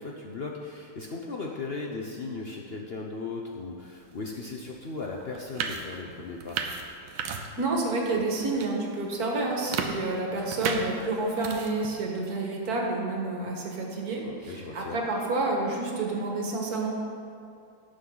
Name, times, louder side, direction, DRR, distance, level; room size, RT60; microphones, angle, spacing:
voice 1, 0.0-6.6 14.2-15.0, left 3 dB, 65° left, -1 dB, 0.6 m, -37 dB
sound 1, 4.7-4.8 5.2-7.8 8.1-8.7 9.1-12.0, right 6 dB, 85° right, 1.6 m, -34 dB
voice 2, 7.6-16.9, right 2 dB, 50° right, -1 dB, 1.9 m, -29 dB
17.0 x 6.6 x 3.9 m, 2.4 s
omnidirectional pair, 2.1 m